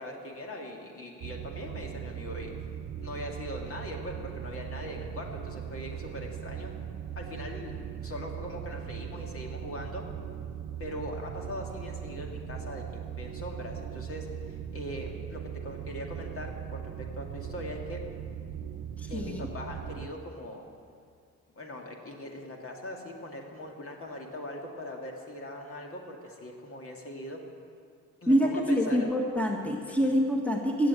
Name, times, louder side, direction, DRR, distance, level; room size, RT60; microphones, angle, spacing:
voice 1, 0.0-2.7 3.0-6.7 7.2-10.0 10.8-18.0 19.1-20.6 21.6-27.4 28.2-29.1 30.0-30.1, left 1 dB, 45° left, 1 dB, 2.2 m, -41 dB
sound 1, 1.2-20.1, right 9 dB, 60° right, 0.9 m, -39 dB
voice 2, 19.0-19.4 28.3-30.9, equal, 5° left, 1 dB, 1.5 m, -26 dB
15.5 x 7.9 x 7.7 m, 2.3 s
cardioid pair, 90°, 30 cm